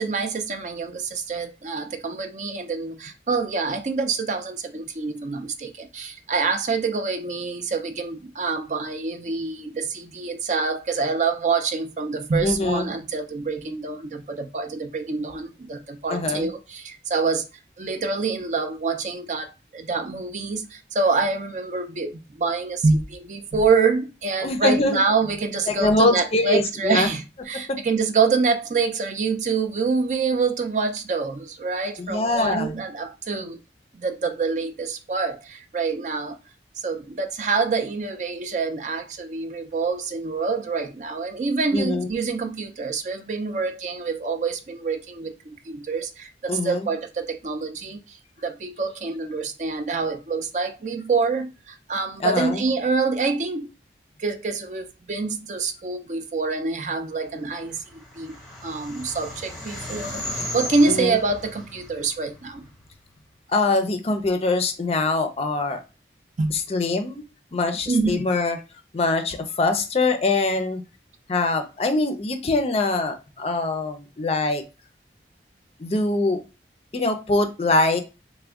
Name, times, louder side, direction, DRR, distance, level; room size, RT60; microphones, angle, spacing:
voice 1, 0.0-17.4 17.8-19.5 19.7-33.6 34.0-36.4 36.8-48.2 48.4-53.7 54.2-58.4 58.6-60.2 60.5-62.6 66.4-66.5 67.9-68.3, right 4 dB, 40° right, 0.4 m, -26 dB
voice 2, 12.4-12.9 16.1-16.5 24.4-25.0 25.7-27.1 32.0-32.7 41.7-42.1 46.5-46.9 52.2-52.6 60.9-61.2 63.5-65.8 66.5-67.2 67.5-68.6 68.9-70.8 71.3-74.6 75.8-76.4 76.9-78.0, left 2 dB, 35° left, 0.4 m, -23 dB
sound 1, 57.5-63.0, left 1 dB, ahead, 0.9 m, -36 dB
3.4 x 2.1 x 3.5 m
head